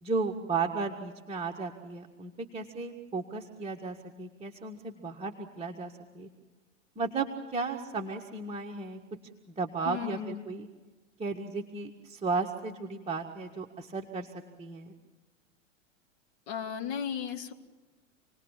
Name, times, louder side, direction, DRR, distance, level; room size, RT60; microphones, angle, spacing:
voice 1, 0.0-6.3 7.0-9.0 9.5-10.7 11.2-14.9, right 4 dB, 15° right, -1 dB, 1.7 m, -35 dB
voice 2, 9.9-10.5 16.5-17.5, left 8 dB, 55° left, 4 dB, 2.7 m, -35 dB
28.5 x 19.5 x 7.4 m, 1.3 s
figure-of-eight pair, 100°, 39 cm